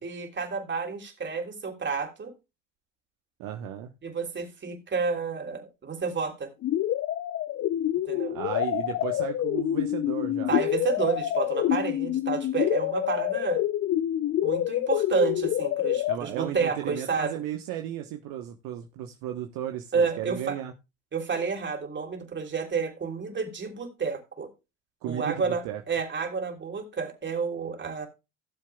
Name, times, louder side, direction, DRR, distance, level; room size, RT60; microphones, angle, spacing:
voice 1, 0.0-2.3 4.0-6.5 8.1-8.4 10.5-13.6 14.4-17.3 19.9-20.6 21.1-24.5 25.0-28.1, right 5 dB, 30° right, 3.3 m, -30 dB
voice 2, 3.4-3.9 8.3-10.5 16.1-20.7 25.0-25.8, right 11 dB, 65° right, 1.2 m, -35 dB
sound 1, 6.6-16.2, left 12 dB, 40° left, 0.6 m, -27 dB
17.0 x 7.4 x 2.3 m
hypercardioid pair, 70°, 36 cm